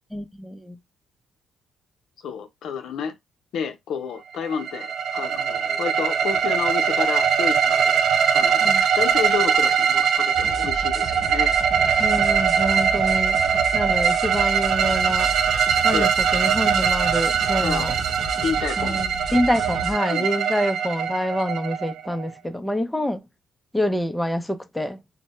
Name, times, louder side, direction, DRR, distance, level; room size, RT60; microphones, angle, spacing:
voice 1, 0.1-0.8 8.6-8.8 12.0-13.4 13.7-15.3 15.8-17.9 18.8-23.2 23.7-25.0, equal, 5° left, 0.5 m, -26 dB
voice 2, 2.2-3.1 3.5-8.0 8.3-8.7 9.0-11.5 15.9-16.1 17.6-17.9 18.3-19.0 20.1-20.3, left 7 dB, 75° left, 0.6 m, -30 dB
sound 1, 4.4-22.3, right 7 dB, 70° right, 0.3 m, -22 dB
sound 2, 10.3-19.9, right 2 dB, 45° right, 1.0 m, -34 dB
2.1 x 2.1 x 2.9 m
cardioid pair, 90°, 0 cm